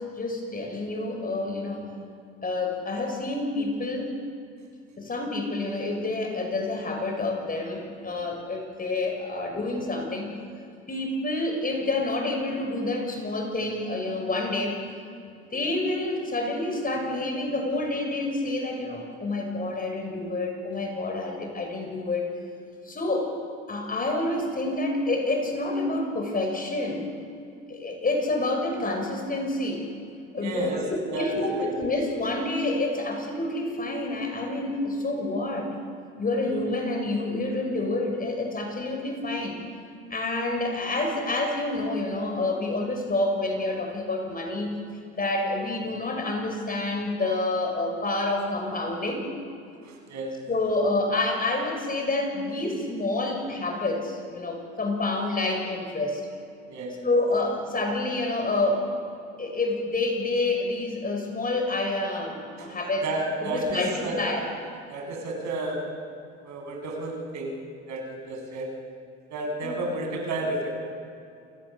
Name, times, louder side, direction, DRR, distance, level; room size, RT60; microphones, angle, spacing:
voice 1, 0.0-1.9 2.4-4.1 5.0-10.3 10.9-14.8 15.5-22.3 22.8-23.3 23.7-27.0 27.7-29.9 30.3-35.7 36.2-39.6 40.1-44.8 45.1-49.3 50.5-56.3 57.0-58.9 59.4-63.1 63.4-64.5 69.6-69.8, left 2 dB, 25° left, 3 dB, 5.6 m, -28 dB
voice 2, 30.3-31.7 36.5-36.6 49.8-50.4 56.7-57.1 62.6-62.7 63.0-64.2 64.9-66.0 66.4-67.5 67.9-68.7 69.3-70.7, right 1 dB, 55° right, 2 dB, 6.7 m, -31 dB
29.0 x 17.0 x 7.1 m, 2.5 s
supercardioid pair, 90°, 34 cm